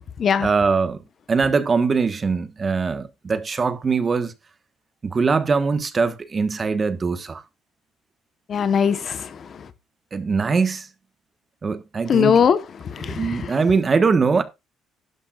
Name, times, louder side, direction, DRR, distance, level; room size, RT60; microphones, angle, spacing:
voice 1, 0.4-1.0 1.3-4.3 5.0-7.4 10.1-10.9 11.6-12.4 13.0-14.4, right 4 dB, 30° right, 1.3 m, -22 dB
voice 2, 8.5-9.6 12.1-12.6 12.8-13.5, left 7 dB, 45° left, 1.1 m, -20 dB
12.0 x 11.0 x 2.4 m
cardioid pair, 105°, 0 cm